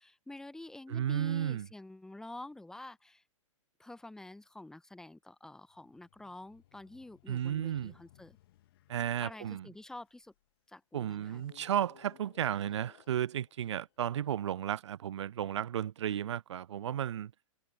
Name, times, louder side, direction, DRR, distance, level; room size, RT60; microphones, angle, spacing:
voice 1, 0.0-3.2 3.8-8.4 9.2-10.3 10.7-11.4, left 2 dB, 5° left, 1.2 m, -48 dB
voice 2, 0.9-1.7 7.3-7.9 8.9-9.7 10.9-17.3, right 10 dB, 60° right, 0.4 m, -33 dB
sound 1, 5.7-10.4 11.1-14.5, left 15 dB, 45° left, 2.2 m, -63 dB
figure-of-eight pair, 115°, 17 cm